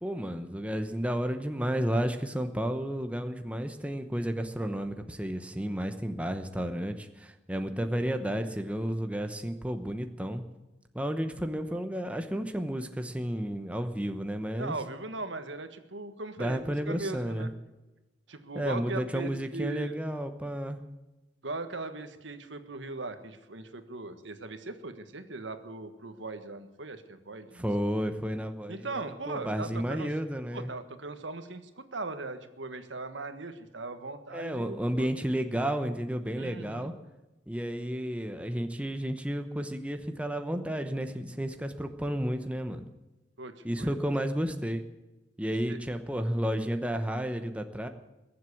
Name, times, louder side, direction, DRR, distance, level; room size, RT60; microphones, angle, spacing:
voice 1, 0.0-10.4 10.9-14.7 16.4-17.5 18.5-20.8 27.5-30.7 34.3-36.9 37.5-42.9 43.6-44.8 45.4-47.9, equal, 5° right, 7 dB, 0.9 m, -32 dB
voice 2, 14.6-17.5 18.3-20.0 21.4-27.6 28.7-30.1 30.5-35.1 36.4-36.9 43.4-43.9 45.7-45.8, right 3 dB, 85° right, 9 dB, 1.5 m, -39 dB
21.5 x 7.7 x 8.6 m, 1.1 s
head